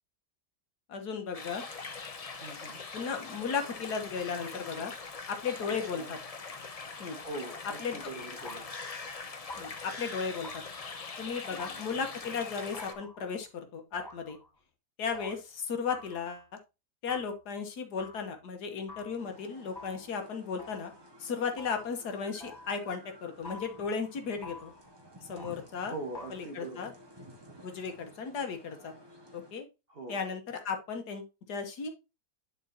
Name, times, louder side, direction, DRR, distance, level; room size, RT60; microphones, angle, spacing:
voice 1, 0.9-1.6 2.9-4.9 5.3-6.2 7.0-7.2 7.8-8.0 9.6-10.6 11.2-13.5 13.7-14.4 15.0-16.5 17.0-20.9 21.2-24.7 25.3-26.0 26.3-26.9 27.6-28.9 29.3-29.7 30.1-31.9, left 5 dB, 70° left, 5 dB, 1.7 m, -35 dB
sound 1, 1.3-12.9, left 4 dB, 40° left, 0.5 m, -42 dB
voice 2, 2.4-2.8 5.6-6.1 7.2-8.7 11.5-11.8 25.9-26.9 29.9-30.2, right 2 dB, 35° right, 3 dB, 1.6 m, -42 dB
sound 2, 7.7-8.0 8.4-9.0 9.5-10.0 10.4-11.0 11.6-12.2 12.7-13.5 13.9-14.5 15.1-15.4 15.9-16.4 17.1-17.4 18.0-18.3 18.9-19.3 19.8-20.1 20.6-21.0 21.6-21.9 22.4-22.8 23.4-23.9 24.4-24.8 25.4-25.7 26.1-26.4, left 2 dB, 15° left, 3.5 m, -48 dB
sound 3, 19.2-29.5, right 1 dB, 15° right, 1.3 m, -54 dB
10.5 x 4.2 x 2.8 m, 0.26 s
omnidirectional pair, 1.8 m